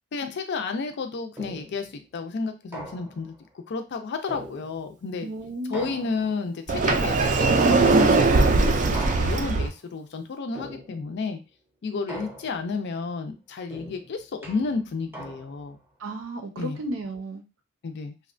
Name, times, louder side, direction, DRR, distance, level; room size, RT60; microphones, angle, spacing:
voice 1, 0.1-3.3 3.7-5.3 5.7-11.4 11.8-15.8 16.6-16.8 17.8-18.1, left 4 dB, 60° left, 6 dB, 0.4 m, -31 dB
sound 1, 1.4-1.9 2.7-3.4 4.3-5.0 5.7-6.5 7.4-8.1 8.9-9.7 10.6-11.2 12.1-12.8 13.7-15.7, equal, 10° right, 0.7 m, -41 dB
voice 2, 5.2-5.9 16.0-17.4, right 1 dB, 80° right, 4 dB, 0.6 m, -34 dB
Sliding door, 6.7-9.7, right 3 dB, 40° right, 0.3 m, -20 dB
2.7 x 2.1 x 2.5 m, 0.28 s
head